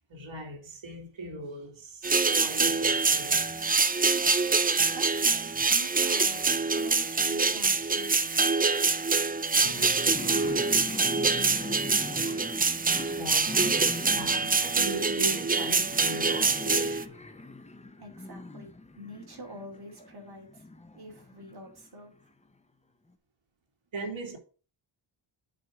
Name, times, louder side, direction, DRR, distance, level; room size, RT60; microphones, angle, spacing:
voice 1, 0.1-3.7 12.9-17.4 23.9-24.4, right 2 dB, 70° right, 2.6 m, -39 dB
sound 1, 2.0-17.0, right 4 dB, 20° right, 0.3 m, -25 dB
voice 2, 4.9-6.4 6.7-8.2 9.6-11.0 18.0-20.6 20.9-22.1, equal, 50° right, 2.7 m, -46 dB
sound 2, 9.6-22.0, left 2 dB, 15° left, 0.6 m, -42 dB
7.6 x 4.7 x 6.4 m
wide cardioid pair, 180°, 49 cm